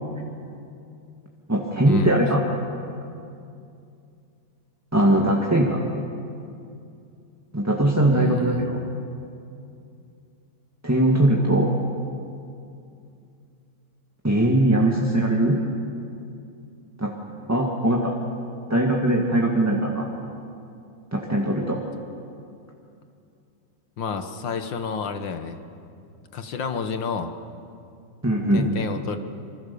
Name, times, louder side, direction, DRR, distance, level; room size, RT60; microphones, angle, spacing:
voice 1, 1.5-2.4 4.9-5.9 7.5-8.8 10.8-11.7 14.2-15.6 17.0-17.1 17.5-18.1 18.7-20.1 21.1-21.8 28.2-28.7, right 1 dB, 10° right, -1 dB, 1.9 m, -20 dB
voice 2, 8.1-8.8 24.0-25.6 26.3-27.3 28.5-29.2, left 5 dB, 70° left, 8 dB, 2.0 m, -30 dB
26.5 x 25.0 x 7.0 m, 2.5 s
omnidirectional pair, 2.2 m